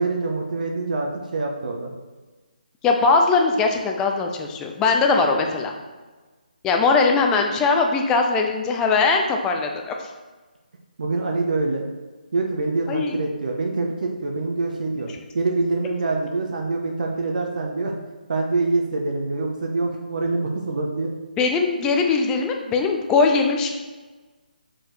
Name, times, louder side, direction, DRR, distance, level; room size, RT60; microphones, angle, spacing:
voice 1, 0.0-1.9 11.0-11.8 12.3-15.1 15.3-17.9 18.3-21.1, right 3 dB, 55° right, 1 dB, 0.8 m, -25 dB
voice 2, 2.8-5.7 6.6-9.9 12.9-13.1 21.4-23.7, left 4 dB, 10° left, 3 dB, 0.5 m, -20 dB
6.6 x 4.6 x 3.1 m, 1.3 s
figure-of-eight pair, 150°, 5 cm